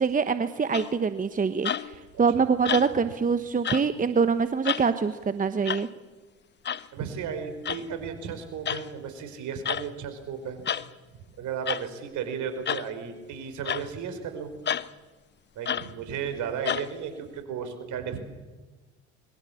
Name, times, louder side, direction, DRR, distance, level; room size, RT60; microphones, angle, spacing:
voice 1, 0.0-5.9, right 5 dB, 25° right, 11 dB, 1.2 m, -25 dB
sound 1, 0.7-1.1 1.6-2.0 2.7-3.1 3.6-3.9 4.6-4.9 5.7-5.9 6.7-6.9 7.6-7.8 8.7-8.9 9.7-9.9 10.7-10.9 11.7-11.9 12.7-12.9 13.7-13.9 14.7-14.9 15.7-15.9 16.7-16.9, left 8 dB, 30° left, 0.9 m, -30 dB
voice 2, 2.1-2.4 6.9-10.6 11.1-14.5 15.5-18.2, right 7 dB, 55° right, 9 dB, 4.9 m, -34 dB
25.5 x 22.5 x 7.3 m, 1.2 s
hypercardioid pair, 70°, 34 cm